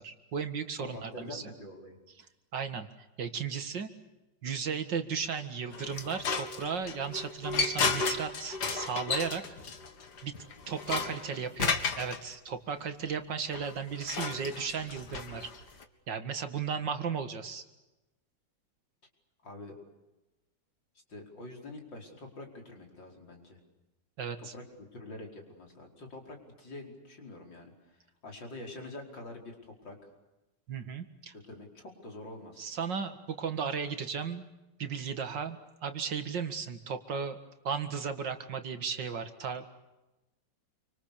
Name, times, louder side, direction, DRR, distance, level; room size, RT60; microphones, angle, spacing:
voice 1, 0.0-1.4 2.5-2.9 3.2-3.9 4.4-9.4 10.2-10.3 10.7-15.5 16.1-17.6 24.2-24.5 30.7-31.3 32.6-34.5 34.8-37.4 37.6-39.7, right 6 dB, 75° right, 9 dB, 2.6 m, -35 dB
voice 2, 0.8-2.0 10.9-11.5 19.4-19.7 21.1-23.6 24.4-27.7 28.2-30.0 31.4-32.7, left 2 dB, 90° left, 2 dB, 5.8 m, -46 dB
sound 1, 5.7-12.2 13.5-15.8, left 4 dB, 65° left, 2.4 m, -33 dB
28.5 x 25.5 x 6.8 m, 1.0 s
omnidirectional pair, 2.0 m